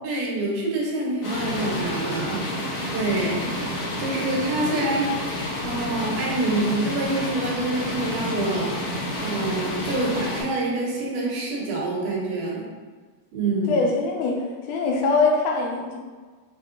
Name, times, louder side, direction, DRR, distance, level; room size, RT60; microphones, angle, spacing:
voice 1, 0.0-2.4 2.9-3.4 4.0-5.1 5.6-8.9 9.2-12.7 13.3-13.8, right 2 dB, 80° right, -4 dB, 2.5 m, -26 dB
sound 1, 1.2-10.4, left 1 dB, 55° left, 1.8 m, -29 dB
voice 2, 13.7-16.0, left 3 dB, 85° left, -1 dB, 2.1 m, -23 dB
5.4 x 3.5 x 2.6 m, 1.4 s
omnidirectional pair, 3.6 m